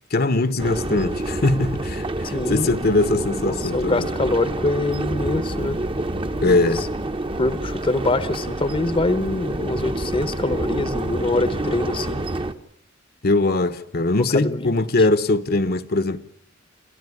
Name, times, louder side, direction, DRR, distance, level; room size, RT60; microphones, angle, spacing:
voice 1, 0.1-4.1 6.4-6.9 13.2-16.2, left 2 dB, 50° left, 1.0 m, -21 dB
sound 1, 0.6-12.5, right 2 dB, 25° right, 1.1 m, -28 dB
voice 2, 2.2-2.7 3.4-5.8 6.4-6.9 7.4-12.2 14.3-14.8, left 2 dB, 25° left, 1.0 m, -24 dB
28.0 x 14.0 x 9.8 m
head